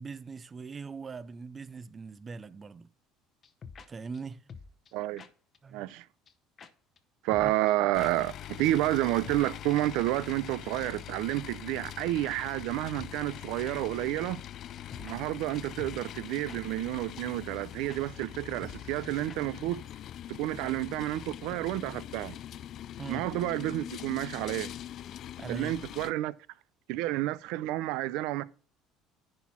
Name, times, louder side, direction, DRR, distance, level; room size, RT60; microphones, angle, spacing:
voice 1, 0.0-2.9 3.9-4.5 5.6-5.9 7.4-7.5 23.0-23.3 25.4-25.7, right 4 dB, 25° right, 0.4 m, -41 dB
sound 1, 3.4-3.9 4.1-4.2 4.5-4.9 5.2-5.3 5.5-5.6 5.9-6.0 6.3-6.4 6.6-6.7 7.0-7.1 7.3-7.7 8.0-8.1 8.4-8.5 8.7-8.8 9.1-9.5 9.8-9.9 10.8-10.9 11.2-11.3 11.6-11.7 11.9-12.0 12.2-12.4 12.6-12.7 13.0-13.4 13.6-13.8 14.0-14.1 14.4-14.5 14.7-15.2 15.4-15.5 15.8-16.2 16.5-16.6 16.8-16.9 17.2-17.3 17.6-17.7 17.9-18.0 18.3-18.4 18.6-19.0 19.3-19.4, left 5 dB, 35° left, 0.8 m, -48 dB
voice 2, 4.9-5.2 5.7-6.1 7.2-14.4 15.0-19.8 20.3-22.4 23.1-24.7 25.5-26.3 26.9-28.4, right 16 dB, 75° right, 0.5 m, -30 dB
sound 2, 7.9-26.1, left 11 dB, 50° left, 0.3 m, -43 dB
10.5 x 4.2 x 5.7 m
cardioid pair, 125°, 0 cm